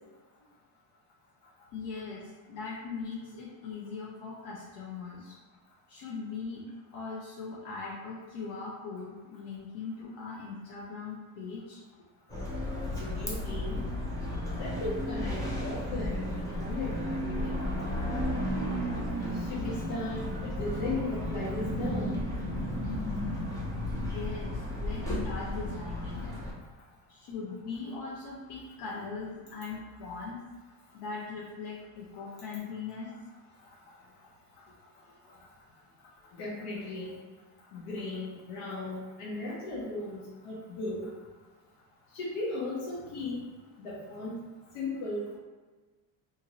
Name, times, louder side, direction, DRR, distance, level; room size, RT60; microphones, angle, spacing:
voice 1, 1.7-5.4 5.9-6.6 6.9-11.8 24.0-26.3 27.1-30.4 30.9-33.1, left 4 dB, 55° left, -5 dB, 0.7 m, -40 dB
sound 1, 12.3-26.5, left 1 dB, 10° left, 0.3 m, -33 dB
voice 2, 12.8-13.8 14.6-17.7 19.3-22.2 35.3-35.4 36.4-37.2 37.7-41.1 42.1-43.5 43.8-44.4 44.7-45.4, left 2 dB, 85° left, -6 dB, 0.8 m, -37 dB
2.7 x 2.6 x 2.9 m, 1.3 s
cardioid pair, 145°, 48 cm